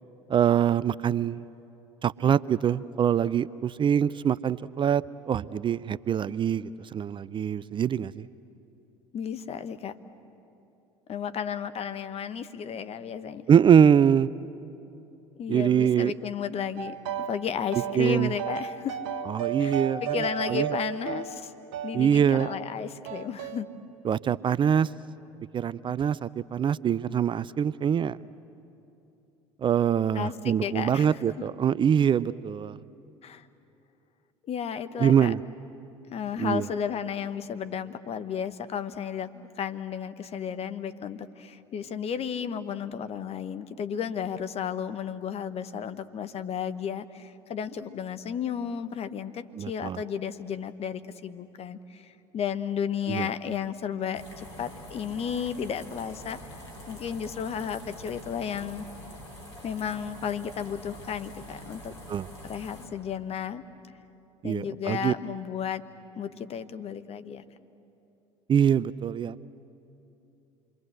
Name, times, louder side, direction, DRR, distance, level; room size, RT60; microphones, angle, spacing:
voice 1, 0.3-1.4 2.0-8.3 13.5-14.3 15.5-16.1 17.9-18.3 19.3-20.7 21.9-22.5 24.0-24.9 25.5-28.2 29.6-32.8 35.0-35.4 36.4-36.7 49.5-50.0 53.1-53.3 62.1-62.3 64.4-65.1 68.5-69.5, right 8 dB, 35° right, 18 dB, 0.5 m, -24 dB
voice 2, 9.1-9.9 11.1-13.5 15.4-16.9 17.3-19.0 19.6-21.5 21.8-23.7 30.1-31.5 33.2-33.5 34.4-35.3 36.1-56.6 56.9-58.9 59.6-61.9 62.4-63.6 64.4-65.8 66.1-67.4, left 8 dB, 45° left, 11 dB, 1.1 m, -33 dB
sound 1, 16.8-17.4 17.7-22.0 22.4-22.6 23.1-23.6, right 8 dB, 75° right, 1.1 m, -34 dB
sound 2, 54.1-62.9, equal, 90° left, 3.6 m, -45 dB
27.5 x 22.5 x 7.9 m, 2.9 s
hypercardioid pair, 65°, 15 cm